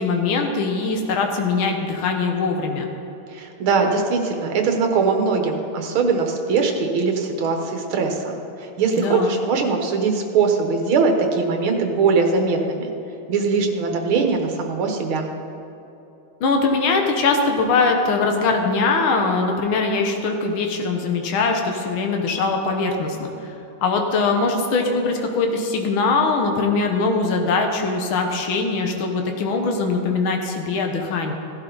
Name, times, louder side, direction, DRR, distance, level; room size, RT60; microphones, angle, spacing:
voice 1, 0.0-2.9 8.9-9.3 16.4-23.5 23.8-31.3, left 4 dB, 75° left, 3 dB, 2.0 m, -21 dB
voice 2, 3.3-12.9 13.3-15.3, right 4 dB, 75° right, 3 dB, 2.0 m, -21 dB
16.0 x 11.5 x 4.0 m, 3.0 s
omnidirectional pair, 2.3 m